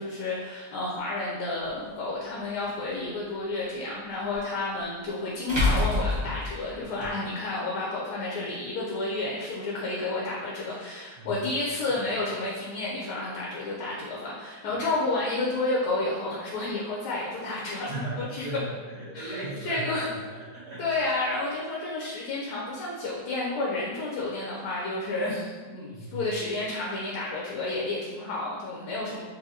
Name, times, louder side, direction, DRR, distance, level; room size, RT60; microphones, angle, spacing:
voice 1, 0.0-18.5 19.1-20.1 20.8-29.2, left 2 dB, 80° left, -5 dB, 1.2 m, -31 dB
sound 1, 1.6-1.7 4.3-4.4 5.5-7.1, left 2 dB, 20° right, 0.9 m, -26 dB
voice 2, 17.9-20.9 25.9-26.2, right 1 dB, 45° right, -12 dB, 1.2 m, -37 dB
4.1 x 2.5 x 2.7 m, 1.4 s
omnidirectional pair, 1.7 m